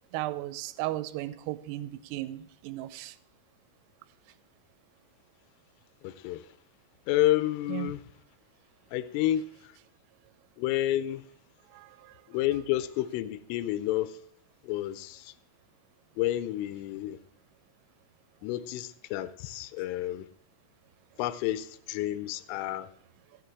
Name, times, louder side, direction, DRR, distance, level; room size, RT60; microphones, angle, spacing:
voice 1, 0.1-3.2 7.7-7.9 11.7-12.2, right 16 dB, 85° right, 3.2 m, -36 dB
voice 2, 6.0-6.4 7.1-8.0 8.9-9.5 10.6-11.2 12.3-14.1 14.6-15.3 16.2-17.2 18.4-20.3 21.2-22.9, left 14 dB, 85° left, 3.1 m, -30 dB
15.5 x 6.8 x 4.6 m
omnidirectional pair, 5.8 m